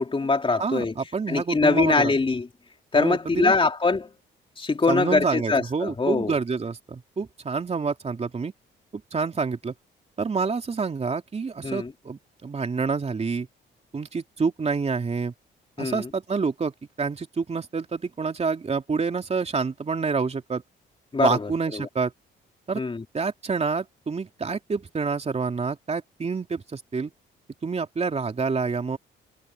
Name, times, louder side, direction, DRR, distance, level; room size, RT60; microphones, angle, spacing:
voice 1, 0.0-0.9 1.3-2.5 2.9-4.1 4.6-6.4 11.6-11.9 15.8-16.1 21.1-21.9 22.7-23.0, left 3 dB, 25° left, 3.3 m, -23 dB
voice 2, 0.6-2.1 2.9-3.5 4.9-8.5 8.9-9.7 10.2-13.5 13.9-15.3 15.8-20.6 21.2-22.1 22.7-22.8 23.1-27.1 27.6-29.0, right 4 dB, 30° right, 3.1 m, -27 dB
cardioid pair, 90°, 20 cm